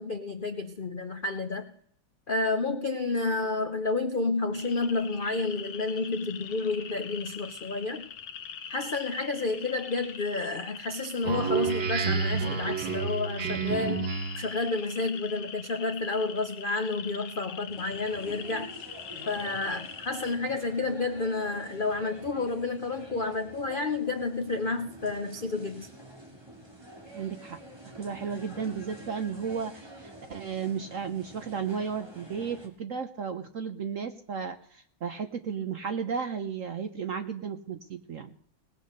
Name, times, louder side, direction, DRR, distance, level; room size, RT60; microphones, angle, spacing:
voice 1, 0.0-1.7 2.3-8.1 8.7-18.7 19.3-25.9, left 3 dB, 55° left, 8 dB, 0.5 m, -30 dB
sound 1, 4.5-20.4, left 8 dB, 85° left, 1.9 m, -43 dB
Speech synthesizer, 11.2-14.6, right 5 dB, 75° right, 1.9 m, -29 dB
sound 2, 17.7-32.7, right 1 dB, 10° right, 2.5 m, -48 dB
voice 2, 27.1-27.6 28.0-38.3, right 6 dB, 55° right, 8 dB, 0.9 m, -34 dB
19.5 x 8.4 x 6.6 m, 0.65 s
omnidirectional pair, 2.2 m